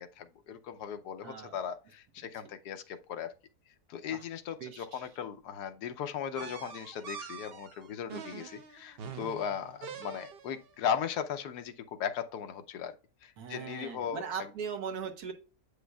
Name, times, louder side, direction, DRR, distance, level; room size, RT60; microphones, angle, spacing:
voice 1, 0.0-3.3 3.9-13.0 13.2-14.2, left 8 dB, 85° left, 1.3 m, -37 dB
voice 2, 1.2-1.6 4.1-4.2 4.6-5.1 13.4-15.3, right 7 dB, 70° right, 1.5 m, -39 dB
sound 1, 6.4-10.7, right 6 dB, 55° right, 0.7 m, -45 dB
8.0 x 5.1 x 2.3 m
omnidirectional pair, 1.7 m